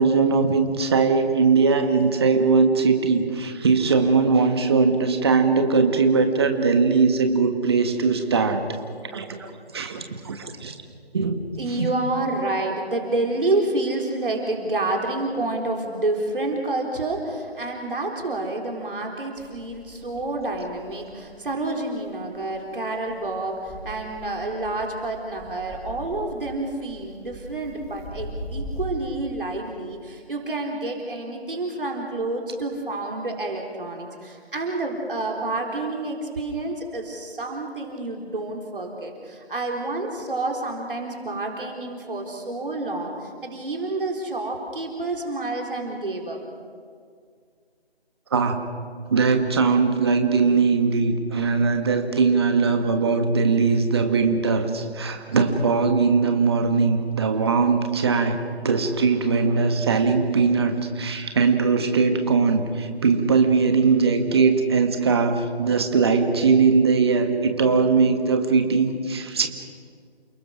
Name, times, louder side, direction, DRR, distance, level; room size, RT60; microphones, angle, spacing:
voice 1, 0.0-8.6 9.1-10.7 11.1-11.4 11.8-11.9 48.3-48.6 49.1-58.4 58.6-69.5, right 4 dB, 25° right, 6 dB, 1.5 m, -20 dB
voice 2, 11.6-46.4, right 2 dB, 55° right, 1 dB, 4.0 m, -29 dB
sound 1, 19.4-28.9, equal, ahead, 2.0 m, -40 dB
29.0 x 19.5 x 6.3 m, 2.1 s
figure-of-eight pair, 165°, 31 cm